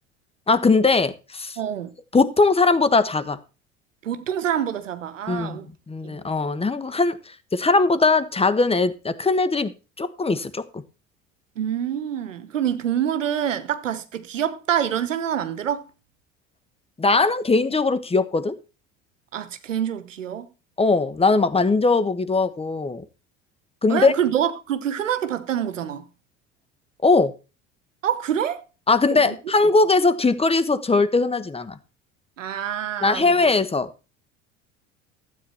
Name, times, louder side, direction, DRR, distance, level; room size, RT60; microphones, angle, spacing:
voice 1, 0.5-1.6 2.1-3.4 5.3-5.6 5.9-7.2 7.5-9.7 10.0-10.6 17.0-18.6 20.8-23.0 23.8-24.1 27.0-27.3 28.9-31.8 33.0-33.9, left 3 dB, 15° left, 1.2 m, -20 dB
voice 2, 1.6-1.9 4.0-5.7 6.0-6.2 11.6-15.8 19.3-20.5 23.9-26.0 28.0-28.6 29.1-29.4 32.4-33.3, right 9 dB, 85° right, 1.1 m, -26 dB
13.0 x 8.5 x 4.3 m
figure-of-eight pair, 70°, 37 cm